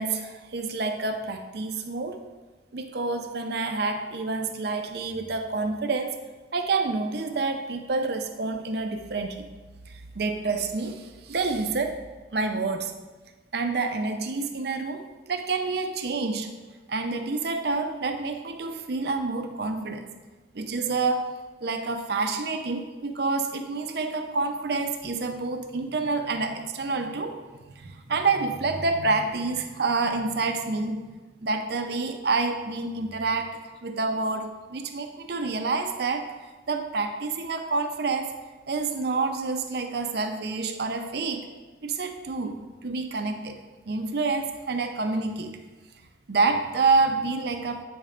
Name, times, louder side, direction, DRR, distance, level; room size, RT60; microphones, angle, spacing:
voice 1, 0.0-2.2 2.7-6.2 6.5-9.5 9.9-12.0 12.3-12.9 13.5-16.5 16.9-20.1 20.5-21.4 21.6-31.1 31.4-38.3 38.7-41.5 41.8-45.5 46.3-47.8, right 3 dB, 55° right, 6 dB, 0.5 m, -28 dB
7.9 x 5.0 x 3.2 m, 1.3 s
head